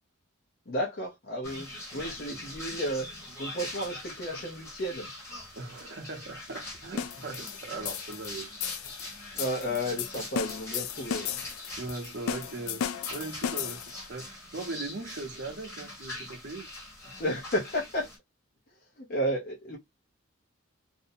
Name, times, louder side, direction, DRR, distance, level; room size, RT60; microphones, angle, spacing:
voice 1, 0.7-3.1 3.4-5.1 9.3-11.3 17.1-18.1 19.0-19.8, equal, 45° left, 0.6 m, -32 dB
sound 1, 1.4-18.2, left 1 dB, 15° left, 1.0 m, -43 dB
voice 2, 5.5-8.6 11.8-12.8 13.1-13.8 14.1-16.7, right 3 dB, 55° right, 0.7 m, -39 dB
sound 2, 7.0-14.1, left 8 dB, 85° left, 0.3 m, -36 dB
2.5 x 2.1 x 2.6 m
head